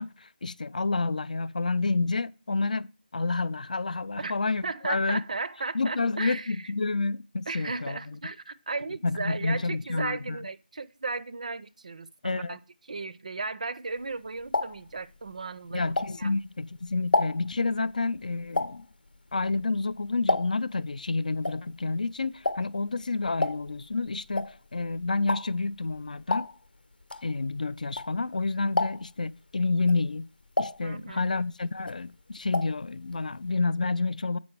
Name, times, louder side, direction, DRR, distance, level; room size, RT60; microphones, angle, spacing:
voice 1, 0.0-2.9 3.1-5.2 5.7-8.2 9.0-10.4 12.2-12.6 15.7-18.9 19.3-26.5 27.2-30.3 30.6-34.4, left 3 dB, 50° left, 0.4 m, -29 dB
voice 2, 4.6-6.7 7.5-12.6 12.9-15.9 16.2-16.3 30.8-31.3, right 3 dB, 45° right, 0.5 m, -35 dB
sound 1, 14.0-16.5 16.9-20.8 21.1-28.4 28.7-29.3 29.7-31.5 31.8-32.8 33.1-33.2 33.5-33.6, left 2 dB, 70° left, 0.8 m, -31 dB
7.6 x 5.2 x 4.6 m
figure-of-eight pair, 165°, 5 cm